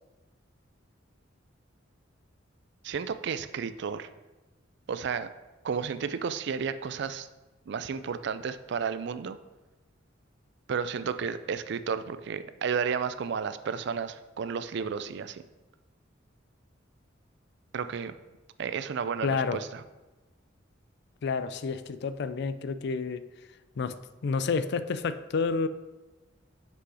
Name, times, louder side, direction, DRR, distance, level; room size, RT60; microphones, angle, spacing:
voice 1, 2.8-4.1 4.9-5.3 5.6-7.3 7.7-9.4 10.7-15.4 17.7-18.1 18.6-19.8, right 6 dB, 60° right, 0.4 m, -32 dB
voice 2, 19.2-19.6 21.2-23.2 23.8-24.0 24.2-25.7, left 5 dB, 60° left, 0.4 m, -29 dB
6.2 x 5.5 x 4.8 m
head